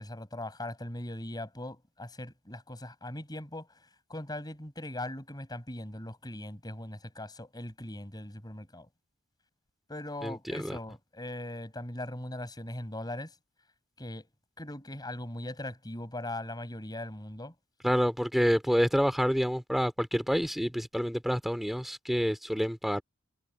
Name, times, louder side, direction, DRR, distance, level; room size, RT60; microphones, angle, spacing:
voice 1, 0.0-3.7 4.1-8.9 9.9-13.3 14.0-14.3 14.6-17.5, left 1 dB, 20° left, 5.7 m, -40 dB
voice 2, 10.2-10.8 17.8-23.0, equal, ahead, 3.0 m, -28 dB
head